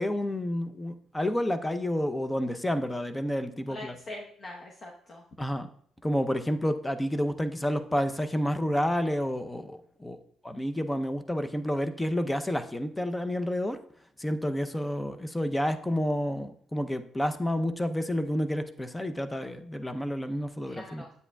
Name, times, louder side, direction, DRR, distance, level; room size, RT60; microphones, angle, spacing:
voice 1, 0.0-3.9 5.4-5.7 6.0-10.2 10.4-13.8 14.2-21.0, equal, 10° left, 9 dB, 0.6 m, -30 dB
voice 2, 3.7-5.2 20.6-21.1, left 1 dB, 50° left, 0 dB, 1.0 m, -43 dB
9.8 x 8.1 x 2.3 m, 0.62 s
cardioid pair, 90°, 0 cm